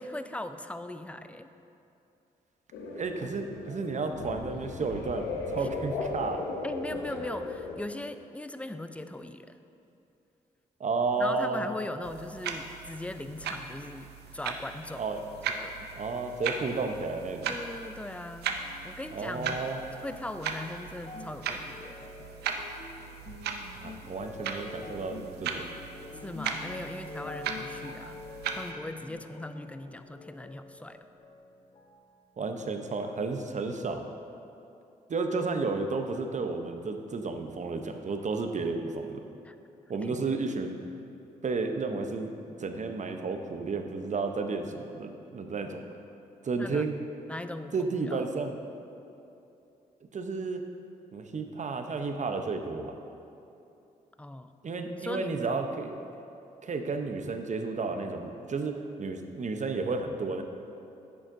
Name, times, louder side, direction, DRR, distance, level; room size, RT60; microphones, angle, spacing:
voice 1, 0.0-1.5 5.6-5.7 6.6-9.6 11.2-15.0 15.5-15.9 17.5-19.6 20.0-22.0 26.2-28.2 28.5-31.0 39.4-39.5 40.0-40.2 46.6-46.9 47.3-48.2 54.2-54.5 55.0-55.6, left 1 dB, 10° left, 10 dB, 0.4 m, -39 dB
sound 1, 2.7-7.8, left 3 dB, 90° left, 0.7 m, -37 dB
voice 2, 2.9-6.5 10.8-11.7 15.0-15.3 15.9-17.5 19.1-19.8 23.7-25.7 32.4-34.1 35.1-39.2 39.9-40.8 41.4-42.3 42.6-45.8 46.4-46.9 47.7-48.6 50.1-50.6 51.1-52.9 54.6-56.1 56.6-60.4, right 4 dB, 45° right, 6 dB, 0.7 m, -32 dB
sound 2, 12.0-28.7, right 6 dB, 85° right, 0.5 m, -38 dB
sound 3, 18.6-32.1 32.4-33.3 34.0-34.1, left 2 dB, 35° left, 0.8 m, -46 dB
10.0 x 7.1 x 2.6 m, 2.8 s
supercardioid pair, 50°, 17 cm